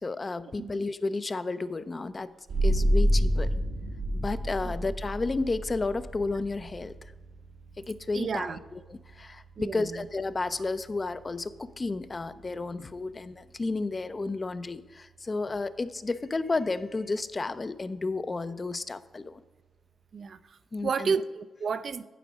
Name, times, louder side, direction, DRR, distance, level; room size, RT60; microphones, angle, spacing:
voice 1, 0.0-2.3 2.6-3.5 4.1-7.1 7.8-19.4 20.7-21.2, left 3 dB, 35° left, 12 dB, 0.5 m, -32 dB
sound 1, 2.5-13.7, equal, 85° right, 1.4 m, -31 dB
voice 2, 8.1-8.6 9.6-9.9 20.1-20.6 20.8-22.0, right 5 dB, 60° right, 12 dB, 0.4 m, -31 dB
11.0 x 4.8 x 5.1 m, 1.3 s
cardioid pair, 70°, 0 cm